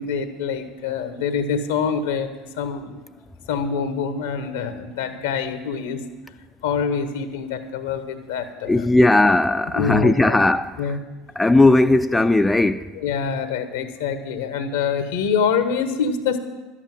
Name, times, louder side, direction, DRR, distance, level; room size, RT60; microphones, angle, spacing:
voice 1, 0.0-2.3 2.6-3.0 3.5-6.0 6.6-8.9 9.7-10.4 10.8-11.0 12.9-16.4, left 6 dB, 75° left, 1.2 m, -25 dB
voice 2, 8.7-10.8 11.4-12.9, left 2 dB, 10° left, 0.5 m, -17 dB
11.5 x 8.2 x 7.6 m
hypercardioid pair, 70°, 0 cm